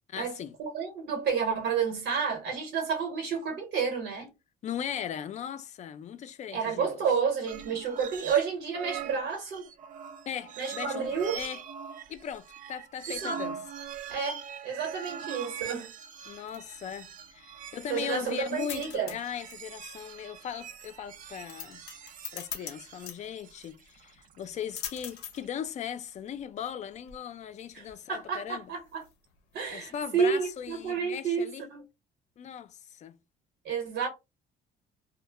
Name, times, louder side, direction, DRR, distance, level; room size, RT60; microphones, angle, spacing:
voice 1, 0.1-0.6 4.6-7.0 10.3-11.6 12.1-13.6 16.3-21.8 22.3-28.7 29.7-31.6 32.4-33.2, left 9 dB, 45° left, 0.4 m, -38 dB
voice 2, 0.6-4.3 6.5-9.7 10.6-11.4 13.1-13.4 14.1-15.9 17.9-19.1 27.7-29.0 29.5-31.8 33.6-34.1, right 6 dB, 75° right, 1.0 m, -30 dB
sound 1, 7.5-8.5 8.7-25.5, right 8 dB, 50° right, 0.4 m, -43 dB
sound 2, 16.2-31.0, left 9 dB, 90° left, 0.6 m, -47 dB
2.1 x 2.1 x 3.3 m
cardioid pair, 110°, 17 cm